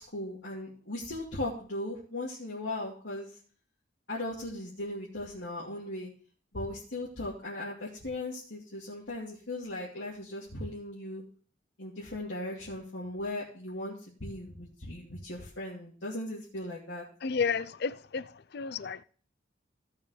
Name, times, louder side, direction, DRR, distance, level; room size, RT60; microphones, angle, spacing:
voice 1, 0.0-3.3 4.1-6.1 6.5-11.2 11.8-17.1, left 1 dB, 75° left, 2.5 m, -38 dB
voice 2, 17.2-19.0, left 5 dB, 60° left, 0.5 m, -32 dB
16.0 x 7.3 x 3.2 m
head